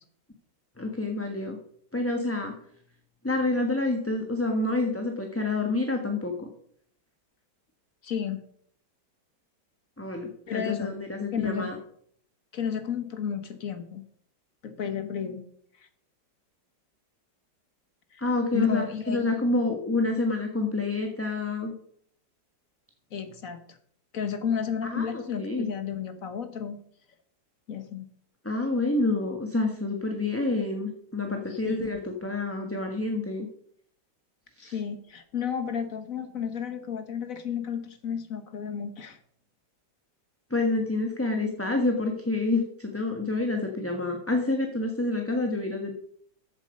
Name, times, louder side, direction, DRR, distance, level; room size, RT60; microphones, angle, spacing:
voice 1, 0.8-1.6 1.9-2.5 3.2-6.5 10.0-11.8 18.2-21.7 24.9-25.7 28.4-33.5 34.6-34.7 40.5-46.0, left 2 dB, 10° left, 2 dB, 1.2 m, -28 dB
voice 2, 8.0-8.4 10.5-10.9 11.3-11.7 12.5-14.0 14.6-15.4 18.1-18.2 18.5-19.4 23.1-23.8 24.1-26.8 27.7-28.1 31.5-31.8 34.6-39.2, left 7 dB, 50° left, 9 dB, 1.5 m, -32 dB
14.0 x 7.5 x 5.4 m, 0.65 s
omnidirectional pair, 1.9 m